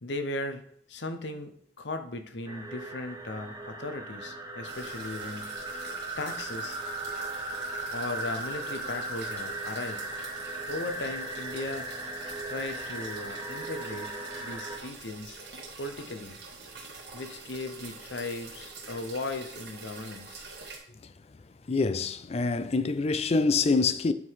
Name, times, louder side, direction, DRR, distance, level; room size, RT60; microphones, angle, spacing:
voice 1, 0.0-0.6 0.9-5.6 6.2-6.8 7.9-10.1 10.7-11.9 12.5-15.4 15.8-16.4 17.1-20.5, left 2 dB, 70° left, 0.8 m, -37 dB
sound 1, 2.4-14.8, right 2 dB, 20° right, 0.8 m, -37 dB
sound 2, 4.6-20.8, right 4 dB, 60° right, 1.8 m, -46 dB
voice 2, 21.7-24.1, left 4 dB, 35° left, 0.4 m, -25 dB
9.3 x 3.8 x 4.7 m
head